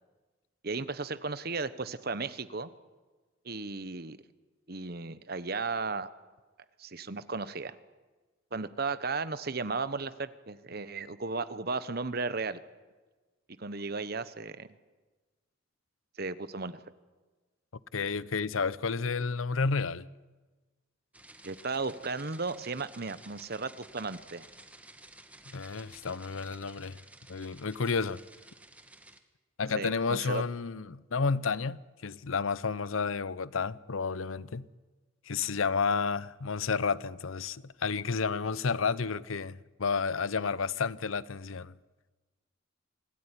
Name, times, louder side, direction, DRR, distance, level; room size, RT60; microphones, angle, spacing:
voice 1, 0.6-2.7 3.4-4.2 4.7-6.1 6.8-7.8 8.5-12.6 13.6-14.7 16.2-16.8 21.4-24.5 29.7-30.4, right 4 dB, 50° right, 1.1 m, -35 dB
voice 2, 17.9-20.1 25.5-27.0 27.3-28.2 29.6-34.7 35.3-41.7, left 5 dB, 90° left, 0.7 m, -31 dB
sound 1, 21.1-29.2, right 2 dB, 5° right, 1.5 m, -53 dB
26.0 x 17.0 x 9.9 m
head